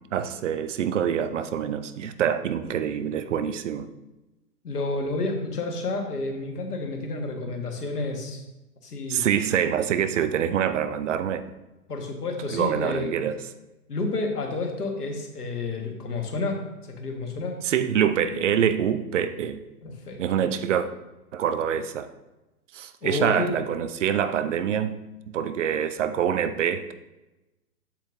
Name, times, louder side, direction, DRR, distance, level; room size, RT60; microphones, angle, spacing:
voice 1, 0.1-3.9 9.1-11.4 12.5-13.4 17.6-19.6 20.2-20.9 21.3-22.1 22.7-25.0 25.3-26.9, right 8 dB, 55° right, 12 dB, 0.6 m, -25 dB
voice 2, 4.6-8.4 8.8-9.3 11.9-13.1 13.9-17.6 19.8-20.4 23.0-23.6, left 3 dB, 80° left, 3 dB, 1.6 m, -30 dB
7.4 x 7.3 x 2.6 m, 1.0 s
figure-of-eight pair, 120°, 46 cm